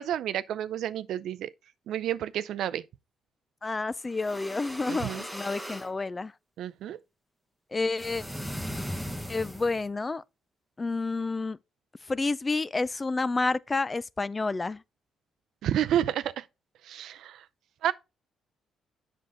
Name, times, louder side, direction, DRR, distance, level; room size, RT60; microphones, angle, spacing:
voice 1, 0.0-1.5 1.9-2.8 4.9-5.2 6.6-7.0 15.6-16.5 16.8-17.4 17.8-17.9, right 11 dB, 75° right, 0.5 m, -30 dB
voice 2, 3.6-6.3 7.7-8.2 9.3-10.2 10.8-11.6 12.1-14.8, left 3 dB, 25° left, 0.4 m, -29 dB
sound 1, 4.1-5.9 8.0-9.9, equal, ahead, 1.1 m, -38 dB
7.7 x 6.3 x 3.7 m
cardioid pair, 90°, 0 cm